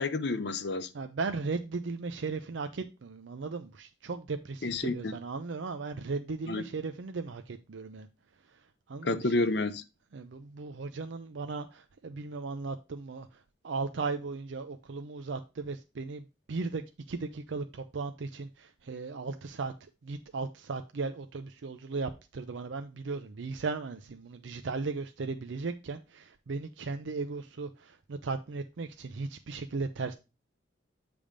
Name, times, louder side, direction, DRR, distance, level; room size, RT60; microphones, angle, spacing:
voice 1, 0.0-0.9 4.6-5.2 6.5-6.6 9.0-9.8, left 2 dB, 60° left, 0.7 m, -30 dB
voice 2, 0.9-8.1 8.9-9.3 10.1-16.8 17.1-19.7 20.0-30.1, right 4 dB, 75° right, 0.5 m, -37 dB
8.6 x 3.4 x 5.1 m
head